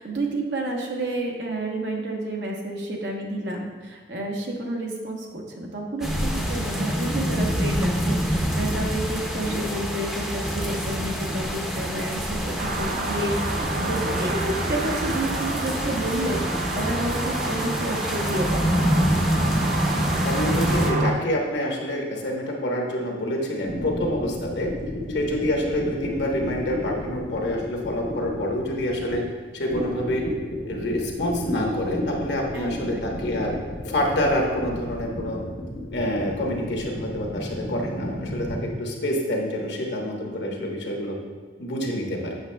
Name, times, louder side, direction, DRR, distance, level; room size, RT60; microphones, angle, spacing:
voice 1, 0.0-18.6 32.5-33.2, right 1 dB, 80° right, 0 dB, 1.0 m, -30 dB
sound 1, 6.0-20.9, equal, 5° right, 0.6 m, -26 dB
sound 2, 12.6-21.1, right 3 dB, 50° right, 0.5 m, -29 dB
voice 2, 20.2-24.7 25.1-29.2 29.5-30.2 30.6-35.4 35.9-41.1 41.6-42.3, left 1 dB, 75° left, 0 dB, 1.1 m, -27 dB
sound 3, 23.7-29.3 29.7-38.7, left 1 dB, 90° left, 1.4 m, -33 dB
7.9 x 6.3 x 2.2 m, 1.5 s
head